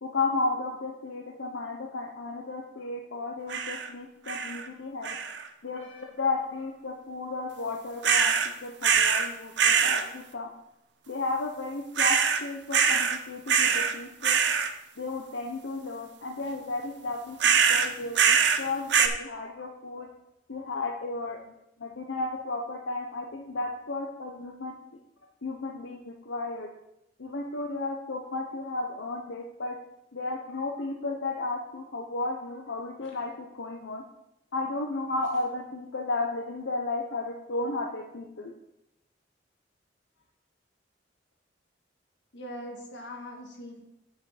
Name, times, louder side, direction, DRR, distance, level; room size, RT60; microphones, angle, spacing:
voice 1, 0.0-5.2 5.6-10.5 11.1-14.4 15.0-20.1 20.5-21.5 21.8-24.7 25.4-26.7 27.2-29.8 30.1-34.0 34.5-38.5, left 3 dB, 90° left, 1 dB, 0.8 m, -33 dB
sound 1, 3.5-3.9 4.3-4.7 5.0-5.5 8.0-8.5 8.8-9.3 9.6-10.0 12.0-12.4 12.7-13.2 13.5-13.9 14.2-14.7 17.4-18.6 18.9-19.1, right 7 dB, 70° right, 0.7 m, -23 dB
voice 2, 42.3-43.8, left 1 dB, 65° left, 2 dB, 1.7 m, -41 dB
8.3 x 5.9 x 4.9 m, 0.85 s
head